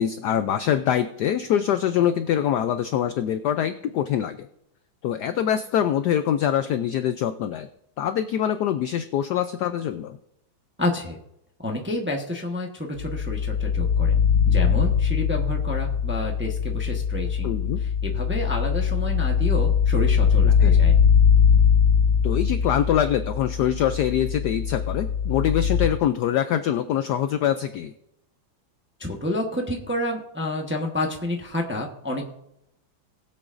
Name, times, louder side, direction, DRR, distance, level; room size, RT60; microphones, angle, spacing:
voice 1, 0.0-4.5 5.0-7.7 8.0-10.2 17.4-17.8 20.4-20.8 22.2-27.9, left 10 dB, 75° left, 10 dB, 0.9 m, -24 dB
voice 2, 10.8-11.2 11.6-17.5 17.8-20.9 29.0-32.2, left 1 dB, 10° right, 1 dB, 0.7 m, -29 dB
sound 1, 13.0-25.9, left 7 dB, 60° left, 2.5 m, -21 dB
20.0 x 8.0 x 2.6 m, 0.79 s
omnidirectional pair, 2.2 m